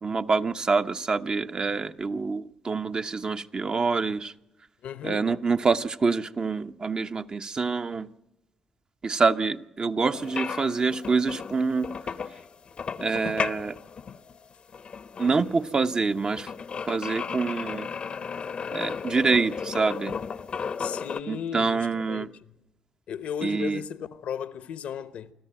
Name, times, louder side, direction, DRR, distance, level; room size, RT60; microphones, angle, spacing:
voice 1, 0.0-4.3 5.0-8.1 9.0-11.9 13.0-13.8 15.2-16.5 16.9-17.9 18.7-20.2 21.3-22.3 23.4-23.8, right 4 dB, 40° right, 0.9 m, -26 dB
voice 2, 4.8-5.3 20.8-22.4 23.1-25.3, left 8 dB, 75° left, 1.0 m, -35 dB
sound 1, 10.1-21.2, left 6 dB, 55° left, 0.8 m, -35 dB
25.5 x 13.5 x 9.0 m
supercardioid pair, 55°, 2 cm